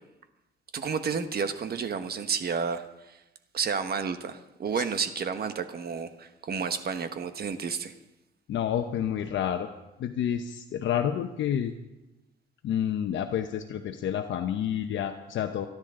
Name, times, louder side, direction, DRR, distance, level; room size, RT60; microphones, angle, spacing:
voice 1, 0.7-3.2 3.5-7.9, right 6 dB, 50° right, 9 dB, 1.3 m, -31 dB
voice 2, 8.5-9.7 10.0-11.7 12.6-15.7, left 9 dB, 70° left, 5 dB, 0.9 m, -29 dB
27.5 x 10.5 x 3.8 m, 0.96 s
cardioid pair, 90°, 20 cm